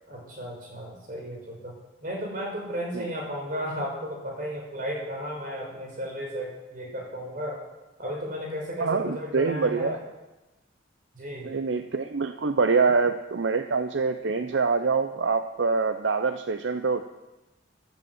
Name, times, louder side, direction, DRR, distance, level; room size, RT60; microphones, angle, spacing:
voice 1, 0.1-1.8 2.0-7.6 8.0-10.0 11.1-11.5, equal, 45° right, -1 dB, 5.2 m, -34 dB
voice 2, 8.8-10.0 11.4-17.0, right 4 dB, 70° right, 10 dB, 0.6 m, -25 dB
14.0 x 10.5 x 8.0 m, 1.1 s
head